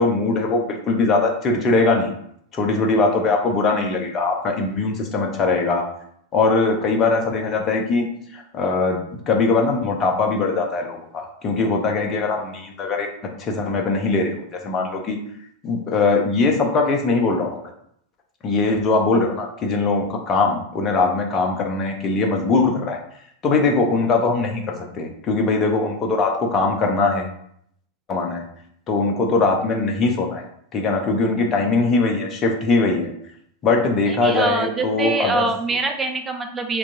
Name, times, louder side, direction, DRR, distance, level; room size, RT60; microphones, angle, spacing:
voice 1, 0.0-2.1 2.5-5.8 6.3-8.0 8.3-13.1 13.4-15.2 15.6-17.6 18.4-23.0 23.4-27.3 28.1-28.4 28.9-30.4 30.7-33.1 33.6-35.5, left 3 dB, 30° left, 2 dB, 0.7 m, -21 dB
voice 2, 34.1-36.8, right 3 dB, 15° right, 4 dB, 0.5 m, -24 dB
4.4 x 2.9 x 2.6 m, 0.70 s
figure-of-eight pair, 90°, 0 cm